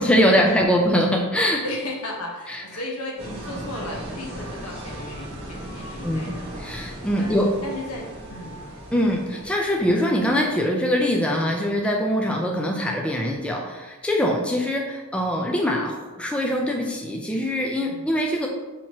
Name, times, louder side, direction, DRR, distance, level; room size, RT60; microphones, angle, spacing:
voice 1, 0.0-1.6 2.5-2.6 6.0-7.6 8.9-18.5, equal, 5° left, 0 dB, 0.3 m, -23 dB
voice 2, 1.6-6.5 7.2-8.6 17.8-18.0, left 1 dB, 85° left, -1 dB, 1.0 m, -35 dB
sound 1, 3.2-10.7, right 1 dB, 25° right, 1.0 m, -37 dB
6.1 x 2.9 x 2.8 m, 1.2 s
head